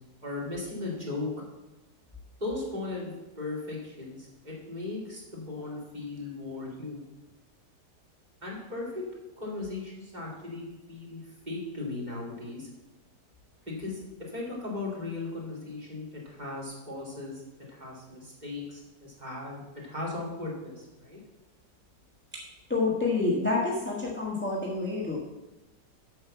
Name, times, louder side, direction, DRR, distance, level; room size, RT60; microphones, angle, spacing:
voice 1, 0.2-1.3 2.4-7.1 8.4-9.0 9.4-12.7 13.7-17.4 17.7-21.2, left 2 dB, 25° right, -4 dB, 2.6 m, -37 dB
voice 2, 22.7-25.2, left 3 dB, 5° left, -3 dB, 1.3 m, -28 dB
7.8 x 5.9 x 7.1 m, 1.0 s
omnidirectional pair, 1.9 m